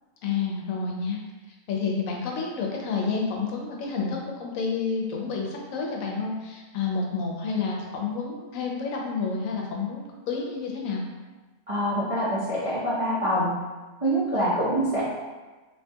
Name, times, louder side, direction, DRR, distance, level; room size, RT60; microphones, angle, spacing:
voice 1, 0.2-1.2 1.7-11.0, left 5 dB, 85° left, -1 dB, 1.0 m, -29 dB
voice 2, 11.7-13.5 14.0-15.0, equal, 40° right, -11 dB, 0.5 m, -25 dB
2.9 x 2.2 x 2.7 m, 1.3 s
omnidirectional pair, 1.4 m